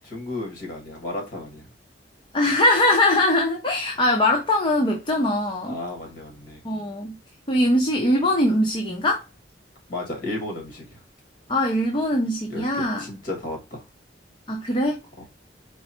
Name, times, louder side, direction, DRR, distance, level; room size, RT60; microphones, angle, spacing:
voice 1, 0.1-1.7 5.7-6.6 9.9-11.0 12.5-13.8 15.2-15.3, left 2 dB, 50° left, 1.8 m, -33 dB
voice 2, 2.3-5.8 6.6-7.1 7.5-9.2 11.5-13.0 14.5-15.0, left 1 dB, 30° left, 0.7 m, -21 dB
4.6 x 2.1 x 4.3 m
head